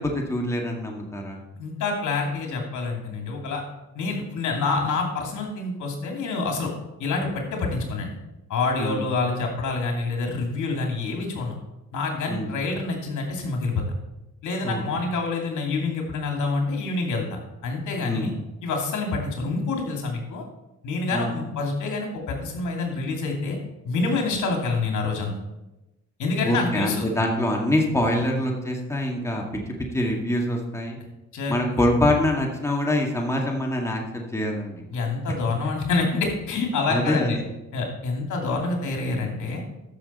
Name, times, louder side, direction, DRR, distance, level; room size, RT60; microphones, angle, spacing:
voice 1, 0.0-1.4 8.8-9.0 12.3-12.5 14.6-14.8 18.0-18.3 21.1-21.3 26.4-29.4 29.9-31.0 31.5-34.8 36.9-37.4, left 1 dB, 10° left, 0 dB, 2.0 m, -25 dB
voice 2, 1.6-3.6 3.9-6.7 7.0-8.1 8.5-11.5 11.9-13.8 14.4-18.3 18.6-20.4 20.8-23.6 23.8-25.3 26.2-27.1 31.3-31.8 34.9-37.4 37.7-39.6, left 3 dB, 75° left, 1 dB, 2.6 m, -27 dB
13.5 x 6.3 x 4.3 m, 0.98 s
cardioid pair, 90°, 30 cm